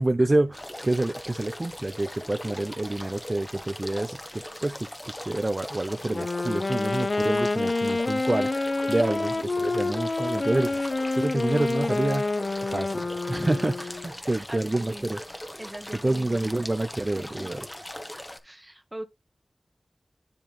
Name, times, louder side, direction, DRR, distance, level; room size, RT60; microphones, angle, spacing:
voice 1, 0.0-8.5 8.9-9.3 9.6-12.3 12.6-13.7 14.0-15.2 16.0-17.6, right 2 dB, 35° right, 0.5 m, -27 dB
sound 1, 0.5-18.4, left 1 dB, 20° left, 1.1 m, -40 dB
Wind instrument woodwind instrument, 6.0-14.1, left 3 dB, 60° left, 0.5 m, -28 dB
voice 2, 9.0-9.5 13.3-13.9 14.2-15.1 15.6-16.5 17.1-17.5 18.4-19.0, right 1 dB, 15° right, 1.3 m, -41 dB
10.5 x 3.5 x 3.3 m
wide cardioid pair, 75°, 0 cm